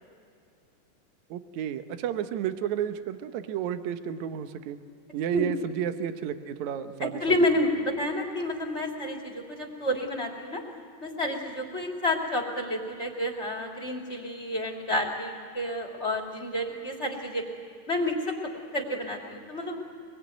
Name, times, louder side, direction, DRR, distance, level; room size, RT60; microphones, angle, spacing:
voice 1, 1.3-4.8 5.1-7.2, right 9 dB, 70° right, 8 dB, 2.3 m, -31 dB
voice 2, 7.0-10.6 11.0-17.4 17.9-18.3 18.7-19.8, left 1 dB, 20° left, 1 dB, 2.9 m, -29 dB
24.5 x 22.5 x 9.4 m, 2.4 s
omnidirectional pair, 3.8 m